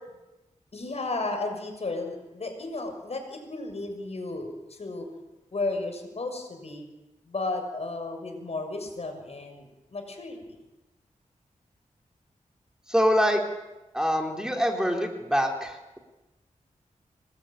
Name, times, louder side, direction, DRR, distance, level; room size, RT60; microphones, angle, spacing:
voice 1, 0.7-5.1 5.5-6.9 7.2-10.6, left 2 dB, 55° left, 5 dB, 6.6 m, -34 dB
voice 2, 12.9-13.4 13.9-16.0, equal, 5° right, 2 dB, 3.9 m, -25 dB
26.0 x 20.5 x 9.2 m, 1.0 s
wide cardioid pair, 80°, 13 cm